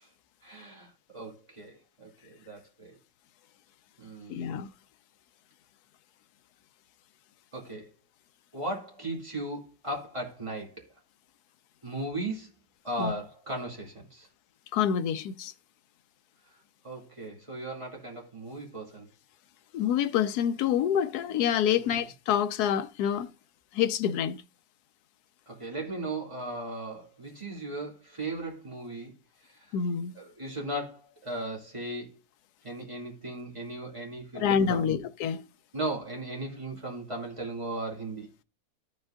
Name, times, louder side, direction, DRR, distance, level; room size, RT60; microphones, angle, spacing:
voice 1, 0.4-3.0 4.0-4.5 7.5-7.9 8.5-10.8 11.8-12.5 12.8-14.3 16.8-19.1 21.8-22.0 25.5-29.1 29.5-29.7 30.1-32.2 32.6-35.0 35.7-38.3, right 1 dB, 20° right, 2.5 m, -37 dB
voice 2, 4.3-4.7 13.0-13.1 14.7-15.5 19.7-23.3 23.7-24.4 29.7-30.1 34.4-35.4, left 8 dB, 90° left, 1.1 m, -27 dB
14.0 x 5.3 x 2.4 m
omnidirectional pair, 1.7 m